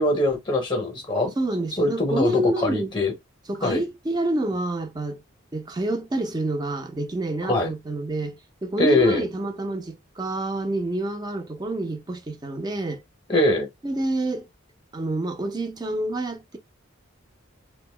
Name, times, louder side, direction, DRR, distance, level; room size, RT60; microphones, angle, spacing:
voice 1, 0.0-1.3 1.8-3.1 3.6-3.8 7.5-7.7 8.8-9.3 13.3-13.7, left 1 dB, 20° left, 0.7 m, -22 dB
voice 2, 1.4-2.9 3.5-5.2 5.5-13.0 13.8-14.5 14.9-16.6, right 2 dB, 20° right, 0.4 m, -28 dB
2.6 x 2.1 x 3.1 m
head